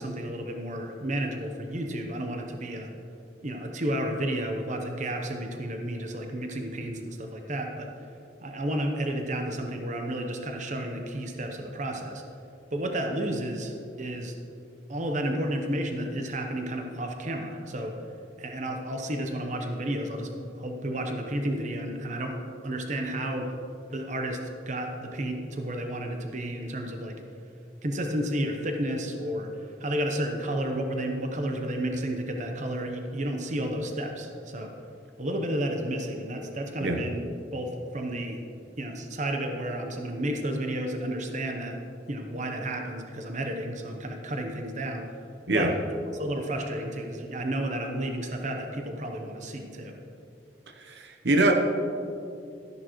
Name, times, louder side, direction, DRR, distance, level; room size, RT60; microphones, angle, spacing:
voice 1, 0.0-2.9 3.4-7.9 8.4-12.2 12.7-14.4 14.9-17.9 18.4-23.5 23.9-27.2 27.8-34.7 35.2-37.2 37.5-38.4 38.8-41.8 42.1-45.1 45.5-45.7 46.1-50.0, right 1 dB, 40° right, 3 dB, 0.9 m, -32 dB
voice 2, 50.8-51.5, right 2 dB, 70° right, 4 dB, 0.9 m, -24 dB
13.0 x 10.5 x 3.1 m, 2.6 s
head